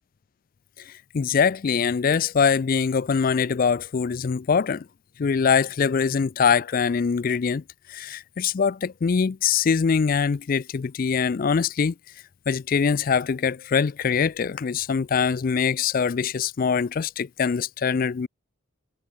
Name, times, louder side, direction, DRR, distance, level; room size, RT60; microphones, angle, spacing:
voice 1, 0.9-4.9 5.2-7.6 7.9-11.9 12.5-18.3, left 6 dB, 40° left, 0.4 m, -23 dB
head